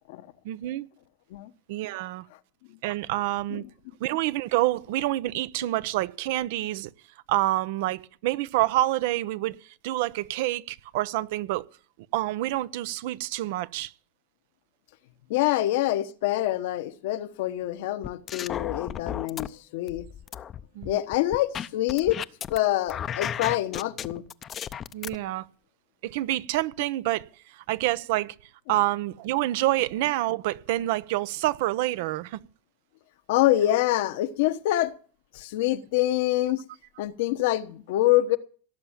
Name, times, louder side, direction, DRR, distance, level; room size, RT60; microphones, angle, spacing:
voice 1, 0.4-0.9 1.7-2.3 2.8-3.6 4.0-6.9 7.3-11.7 12.1-13.9 20.7-21.0 24.9-25.5 26.0-28.3 28.7-32.4, right 16 dB, 70° right, 0.7 m, -27 dB
voice 2, 15.3-20.1 20.8-22.2 22.5-24.2 33.3-34.9 35.3-36.6 37.0-38.4, left 14 dB, 75° left, 1.1 m, -25 dB
sound 1, 18.0-19.5 19.9-22.6 22.9-25.2, left 9 dB, 35° left, 0.6 m, -34 dB
17.5 x 7.0 x 8.9 m
supercardioid pair, 115°, 0 cm